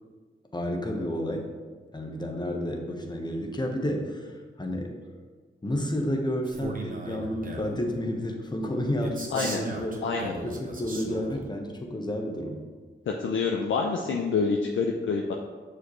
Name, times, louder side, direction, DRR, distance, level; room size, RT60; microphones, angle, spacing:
voice 1, 0.5-1.5 1.9-5.0 5.6-10.0 10.4-12.6, equal, 20° left, 2 dB, 1.0 m, -31 dB
Male speech man speaking, 6.4-7.8 9.0-11.4, right 2 dB, 45° right, 1.0 m, -37 dB
voice 2, 9.3-9.6 10.0-10.3 13.2-15.3, left 4 dB, 75° left, 1 dB, 0.5 m, -27 dB
6.5 x 4.9 x 3.1 m, 1.5 s
cardioid pair, 70°, 20 cm